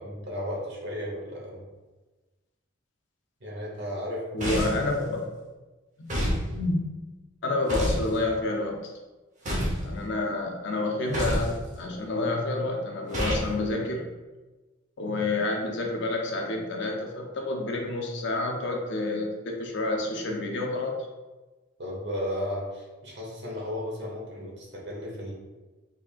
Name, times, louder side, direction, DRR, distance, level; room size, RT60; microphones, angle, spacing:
voice 1, 0.0-1.6 3.4-4.8 11.1-11.3 15.1-15.3 21.8-25.3, equal, 60° right, -3 dB, 1.1 m, -34 dB
voice 2, 4.3-5.2 6.0-6.1 6.4-6.8 7.4-8.9 9.8-14.1 15.0-21.1, left 2 dB, 60° left, 2 dB, 0.6 m, -29 dB
sound 1, 4.4-4.9 6.1-6.4 7.7-8.1 9.5-9.8 11.1-11.5 13.1-13.5, equal, 40° right, 1.0 m, -27 dB
3.7 x 3.5 x 2.4 m, 1.2 s
head